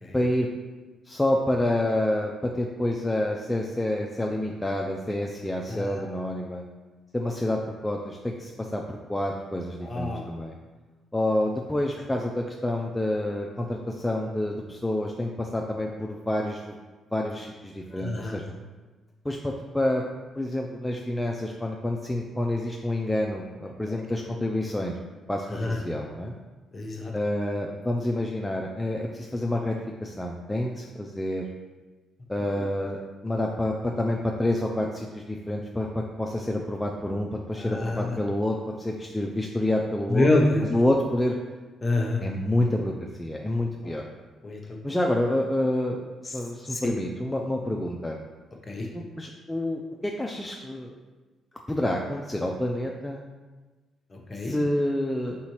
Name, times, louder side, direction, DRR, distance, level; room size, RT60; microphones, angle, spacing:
voice 1, 0.1-0.5 1.1-6.6 7.1-10.5 11.1-16.7 17.1-18.5 19.2-20.0 20.4-24.9 25.3-26.4 27.1-31.4 32.3-40.3 40.7-41.4 42.2-44.0 44.8-48.2 48.9-50.9 51.7-53.3 54.4-55.4, left 1 dB, 10° left, 0 dB, 0.3 m, -28 dB
voice 2, 5.7-6.1 9.8-10.3 17.9-18.4 23.9-24.0 25.5-25.8 26.7-27.1 37.6-38.2 40.1-40.7 41.8-42.2 43.8-44.0 44.4-44.8 46.3-46.4 46.7-46.9 48.7-48.9 54.1-54.5, left 2 dB, 30° left, 0 dB, 0.8 m, -27 dB
4.2 x 3.8 x 3.0 m, 1.3 s
cardioid pair, 90°, 0 cm